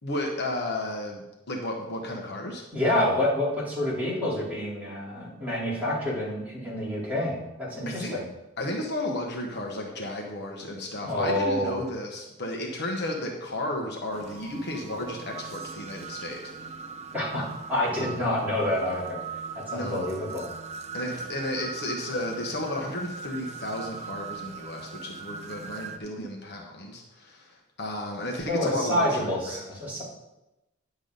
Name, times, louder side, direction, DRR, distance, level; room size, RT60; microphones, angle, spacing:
voice 1, 0.0-2.6 7.9-8.2 8.6-16.4 19.7-20.1 20.9-29.6, left 1 dB, 55° left, 1 dB, 1.2 m, -33 dB
voice 2, 2.7-8.2 11.0-11.8 17.1-19.2 19.5-20.5 28.5-30.0, left 1 dB, 10° right, -9 dB, 3.9 m, -28 dB
sound 1, 14.1-26.0, right 5 dB, 35° right, 0.6 m, -40 dB
10.5 x 7.1 x 4.0 m, 0.97 s
head